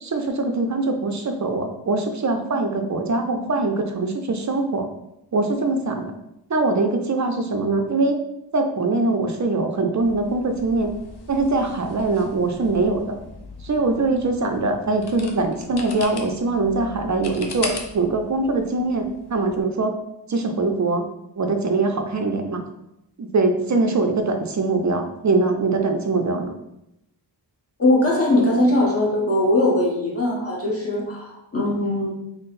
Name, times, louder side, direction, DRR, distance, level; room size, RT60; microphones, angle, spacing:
voice 1, 0.0-4.9 5.3-6.1 6.5-8.2 8.5-10.9 11.3-13.2 13.6-20.0 20.3-21.1 21.4-22.6 23.2-26.5, right 3 dB, 45° right, 5 dB, 0.4 m, -22 dB
sound 1, 10.0-19.6, left 3 dB, 60° left, 0.6 m, -39 dB
voice 2, 27.8-32.1, left 1 dB, 30° left, -3 dB, 0.9 m, -20 dB
3.7 x 2.0 x 4.0 m, 0.84 s
wide cardioid pair, 110°, 44 cm